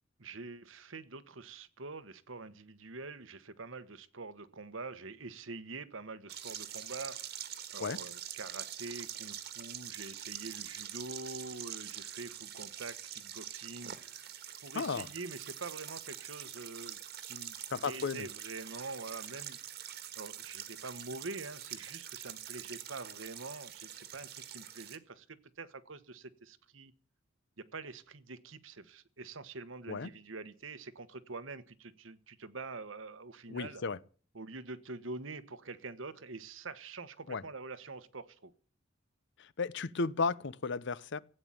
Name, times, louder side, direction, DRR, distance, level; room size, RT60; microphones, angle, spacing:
voice 1, 0.2-7.4 7.7-14.3 14.6-19.8 20.2-26.9 27.6-33.8 34.3-38.5, right 3 dB, 75° right, 1.3 m, -45 dB
sound 1, 6.3-25.0, right 10 dB, 55° right, 1.6 m, -45 dB
voice 2, 14.7-15.1 17.7-18.3 29.9-30.1 33.5-34.0 37.3-37.4 39.6-41.2, left 4 dB, 65° left, 0.7 m, -34 dB
15.5 x 9.0 x 8.8 m
head